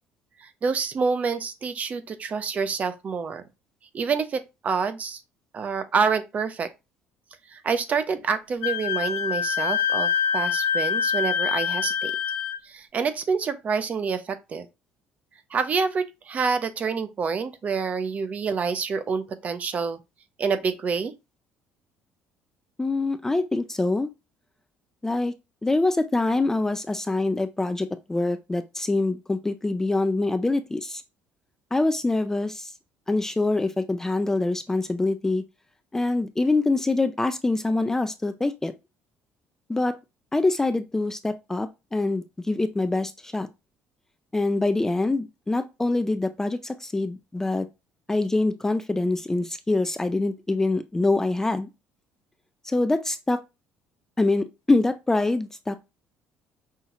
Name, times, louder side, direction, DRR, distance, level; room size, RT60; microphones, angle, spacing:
voice 1, 0.4-3.4 3.9-5.2 5.5-6.7 7.5-12.1 12.6-14.7 15.5-20.0 20.4-21.1, right 5 dB, 35° right, 0.6 m, -27 dB
Wind instrument woodwind instrument, 8.6-12.6, left 7 dB, 80° left, 0.5 m, -25 dB
voice 2, 22.8-24.1 25.0-25.3 25.6-31.0 31.7-32.7 33.1-35.4 35.9-38.7 39.7-40.0 40.3-43.5 44.3-47.7 48.1-51.7 52.6-53.4 54.2-55.8, left 2 dB, 10° left, 0.3 m, -25 dB
5.5 x 2.4 x 2.9 m
cardioid pair, 115°, 4 cm